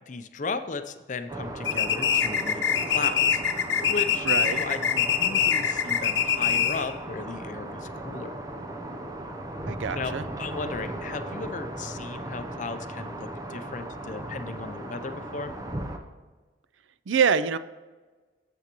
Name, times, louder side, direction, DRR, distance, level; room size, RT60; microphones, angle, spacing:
voice 1, 0.1-3.4 3.8-8.4 9.9-15.5, left 4 dB, 40° left, 9 dB, 0.5 m, -36 dB
sound 1, 1.3-16.0, right 1 dB, 20° right, 0.6 m, -37 dB
sound 2, 1.7-6.9, left 8 dB, 70° left, 0.9 m, -24 dB
voice 2, 4.2-4.6 9.7-10.3 17.1-17.6, right 6 dB, 80° right, 14 dB, 0.4 m, -25 dB
12.5 x 7.9 x 3.0 m, 1.3 s
head